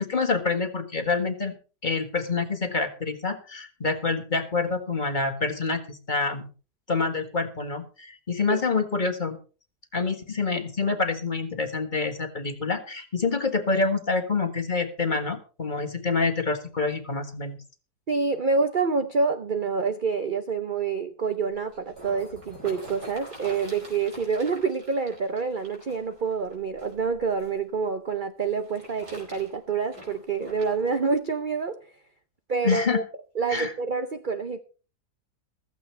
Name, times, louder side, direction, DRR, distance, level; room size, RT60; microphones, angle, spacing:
voice 1, 0.0-1.5 1.8-6.5 6.9-9.4 9.9-17.6 32.6-33.0 33.5-33.7, left 4 dB, 30° left, 6 dB, 1.7 m, -27 dB
voice 2, 18.1-31.8 32.5-33.0 33.4-34.6, right 5 dB, 40° right, 8 dB, 0.7 m, -27 dB
sound 1, 21.5-27.6 28.4-31.0 31.6-31.7, right 1 dB, 80° right, 5.3 m, -46 dB
15.5 x 14.5 x 3.3 m, 0.36 s
omnidirectional pair, 1.7 m